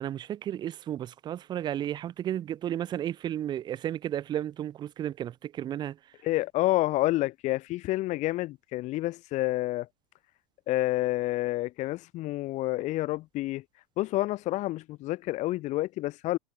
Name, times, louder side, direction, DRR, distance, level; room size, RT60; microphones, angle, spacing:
voice 1, 0.0-6.0, right 11 dB, 25° right, 0.4 m, -33 dB
voice 2, 6.2-9.9 10.7-13.6 14.0-16.4, left 17 dB, 40° left, 0.8 m, -29 dB
hypercardioid pair, 95°, 19 cm